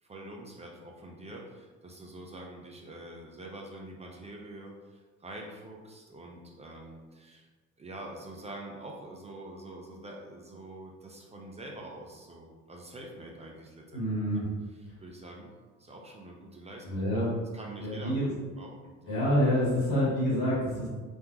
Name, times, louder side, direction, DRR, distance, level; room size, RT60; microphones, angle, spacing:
voice 1, 0.0-7.5 7.8-14.0 14.3-14.4 15.0-15.5 15.8-16.9 17.5-18.1 18.6-19.2, right 1 dB, 15° right, -1 dB, 0.4 m, -45 dB
voice 2, 13.9-14.4 16.8-17.3 17.8-18.3 19.1-20.9, equal, 55° left, -6 dB, 1.3 m, -27 dB
3.3 x 2.3 x 2.9 m, 1.3 s
figure-of-eight pair, 55°, 45 cm